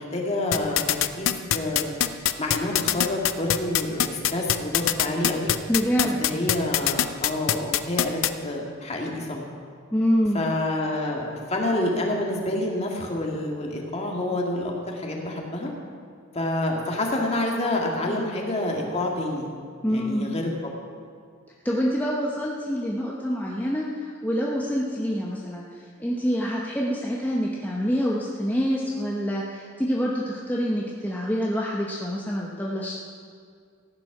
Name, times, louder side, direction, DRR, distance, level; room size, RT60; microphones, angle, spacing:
voice 1, 0.0-1.9 2.4-5.5 6.2-9.4 10.3-15.7 16.3-19.5 19.9-20.7, left 1 dB, 30° left, 0 dB, 2.0 m, -28 dB
sound 1, 0.5-8.3, left 11 dB, 75° left, 0.6 m, -22 dB
voice 2, 5.7-6.2 9.9-10.4 18.1-18.3 19.8-20.3 21.6-32.9, equal, 10° left, -4 dB, 1.1 m, -26 dB
15.0 x 9.7 x 6.0 m, 2.1 s
head